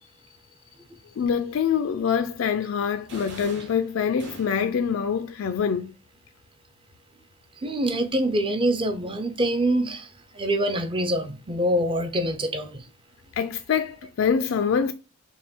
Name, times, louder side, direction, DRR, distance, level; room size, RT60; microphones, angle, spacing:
voice 1, 1.2-5.9 13.3-14.9, left 7 dB, 65° left, 0.4 m, -25 dB
sound 1, 3.1-4.8, right 2 dB, 55° right, 1.4 m, -44 dB
voice 2, 7.6-10.1 10.4-12.8, right 1 dB, 25° right, 0.5 m, -25 dB
5.4 x 2.2 x 4.2 m
head